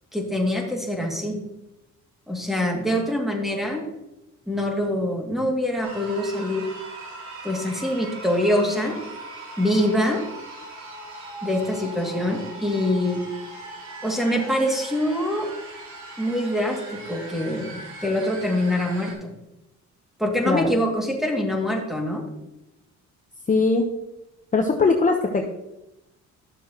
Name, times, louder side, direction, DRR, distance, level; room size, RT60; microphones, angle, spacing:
voice 1, 0.1-1.4 2.3-3.8 4.5-6.7 7.4-9.0 9.6-10.2 11.4-13.2 14.0-15.5 16.2-19.3 20.2-22.2, left 1 dB, ahead, 0 dB, 2.4 m, -24 dB
sound 1, 5.8-19.1, right 2 dB, 65° right, 3.3 m, -40 dB
voice 2, 23.5-23.9 24.5-25.4, left 4 dB, 25° left, 3 dB, 1.0 m, -20 dB
12.5 x 7.0 x 3.0 m, 0.93 s
cardioid pair, 90°, 30 cm